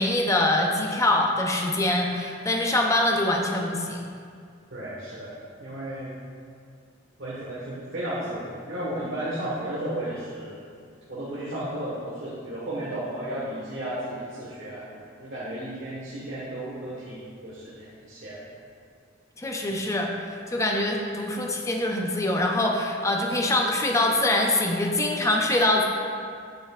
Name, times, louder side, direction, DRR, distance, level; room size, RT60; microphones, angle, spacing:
voice 1, 0.0-4.1 19.4-20.1 20.5-25.8, left 1 dB, 15° left, 0 dB, 0.7 m, -24 dB
voice 2, 4.7-6.1 7.2-10.6 11.1-18.4, right 1 dB, 65° right, -8 dB, 1.5 m, -34 dB
9.4 x 7.9 x 2.5 m, 2.2 s
head